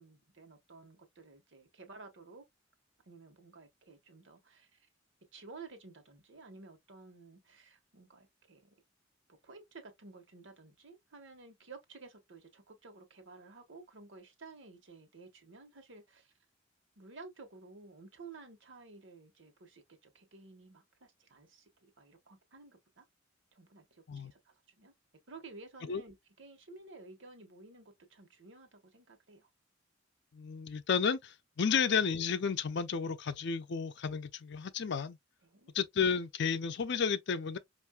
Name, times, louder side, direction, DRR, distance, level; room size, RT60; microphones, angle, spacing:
voice 1, 0.0-2.4 3.1-4.9 5.3-8.7 9.3-16.3 17.0-23.1 23.5-24.9 25.3-29.5 31.6-31.7 35.4-35.7, right 3 dB, 65° right, 1.1 m, -53 dB
voice 2, 30.3-35.2 35.7-37.6, left 6 dB, 60° left, 0.5 m, -32 dB
5.4 x 2.6 x 2.3 m
head